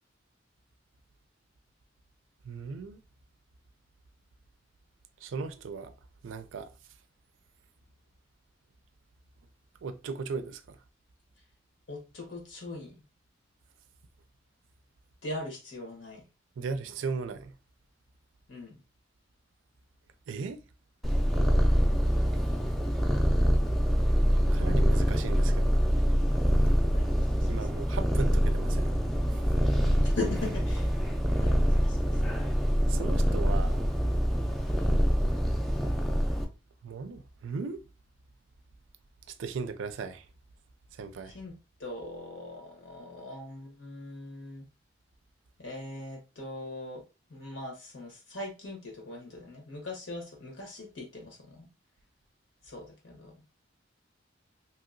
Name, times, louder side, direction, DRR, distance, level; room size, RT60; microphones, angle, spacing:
voice 1, 2.4-3.0 5.2-5.9 6.2-6.7 9.8-10.8 16.6-17.5 20.3-20.6 24.5-25.7 27.5-28.9 29.3-29.4 32.9-33.9 36.8-37.8 39.3-40.3 40.9-41.4, right 5 dB, 85° right, 0.4 m, -37 dB
voice 2, 11.9-13.0 15.2-16.2 18.5-18.8 26.9-27.9 30.0-30.9 31.3-32.2 41.3-41.5 41.8-44.6 45.6-47.0 47.3-51.7 52.6-53.4, left 2 dB, 90° left, 1.2 m, -40 dB
Purr, 21.0-36.4, equal, ahead, 0.3 m, -25 dB
2.8 x 2.8 x 2.5 m
head